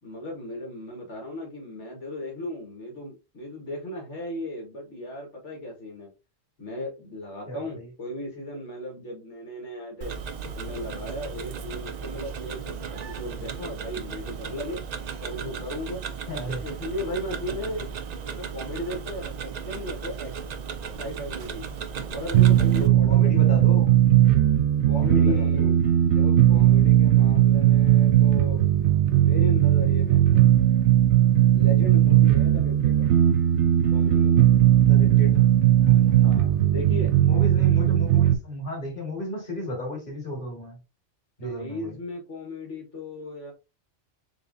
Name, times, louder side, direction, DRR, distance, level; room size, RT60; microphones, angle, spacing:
voice 1, 0.0-6.1 6.6-10.1 10.5-14.8 15.2-16.0 16.6-17.9 18.2-20.3 21.0-21.7 22.0-23.6 24.8-28.7 29.0-30.3 31.5-33.1 33.9-34.8 36.1-37.1 41.4-43.5, left 1 dB, 80° left, 1.9 m, -36 dB
voice 2, 7.5-7.9 16.3-16.6 22.8-24.0 24.9-25.7 31.6-31.9 34.8-35.5 35.7-36.3 37.2-40.8 41.4-42.0, left 1 dB, 45° left, 2.1 m, -34 dB
Tick-tock, 10.0-22.9, right 6 dB, 60° right, 0.4 m, -36 dB
sound 1, 22.3-38.3, right 12 dB, 75° right, 0.9 m, -18 dB
4.0 x 3.7 x 2.6 m
omnidirectional pair, 1.2 m